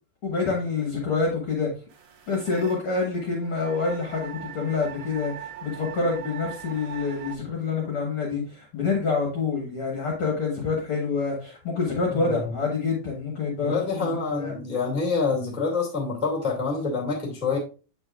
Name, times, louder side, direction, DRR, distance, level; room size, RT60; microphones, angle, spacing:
voice 1, 0.2-1.7 2.3-14.5, left 4 dB, 50° left, -1 dB, 1.8 m, -27 dB
sound 1, 1.9-7.4, right 8 dB, 80° right, 1.3 m, -41 dB
voice 2, 12.1-12.5 13.6-17.6, left 4 dB, ahead, -1 dB, 1.4 m, -27 dB
8.7 x 6.3 x 2.5 m, 0.33 s
omnidirectional pair, 4.2 m